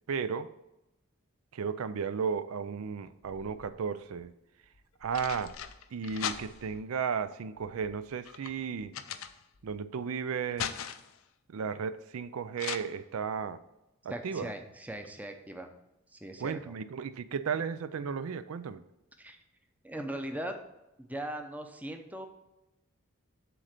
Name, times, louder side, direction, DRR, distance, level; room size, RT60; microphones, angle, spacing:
voice 1, 0.1-0.5 1.5-4.3 5.0-5.5 5.9-8.9 9.6-10.8 11.5-13.6 14.0-14.5 16.4-18.8, right 6 dB, 80° right, 13 dB, 0.4 m, -34 dB
sound 1, 3.0-3.9 4.7-6.8 7.6-9.8 10.2-11.2 12.6-12.8, left 8 dB, 70° left, 0.5 m, -40 dB
voice 2, 14.1-15.7 16.1-16.7 19.2-19.4 19.8-20.6 21.0-22.3, right 1 dB, 5° right, 5 dB, 0.6 m, -39 dB
7.6 x 3.8 x 6.5 m, 0.93 s
head